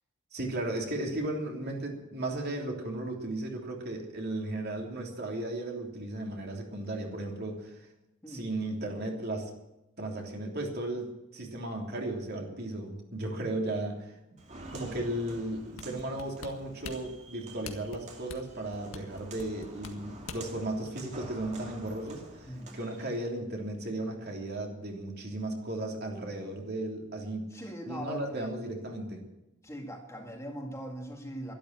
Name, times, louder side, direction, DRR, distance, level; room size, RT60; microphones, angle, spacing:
voice 1, 0.3-7.8 8.3-9.5 10.0-14.2 14.7-29.2, right 1 dB, 50° right, 1 dB, 3.2 m, -35 dB
Walk footsteps, 14.4-23.2, right 2 dB, 35° right, 2.4 m, -49 dB
sound 1, 15.8-20.6 21.1-21.2, left 4 dB, 75° left, 1.8 m, -44 dB
voice 2, 22.4-22.8 27.5-28.6 29.6-31.5, equal, 15° left, 2 dB, 2.0 m, -41 dB
12.5 x 12.5 x 7.5 m, 0.93 s
head